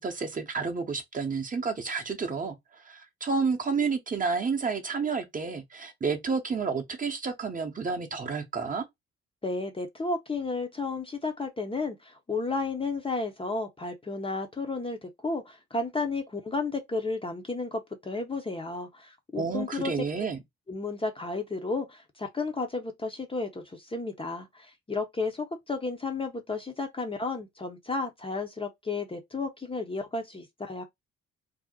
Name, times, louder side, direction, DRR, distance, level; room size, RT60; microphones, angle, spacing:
voice 1, 0.0-8.8 19.4-20.4, right 5 dB, 25° right, 0.7 m, -30 dB
voice 2, 9.4-20.0 20.7-30.8, left 3 dB, 15° left, 0.6 m, -33 dB
2.7 x 2.0 x 3.9 m
figure-of-eight pair, 45°, 31 cm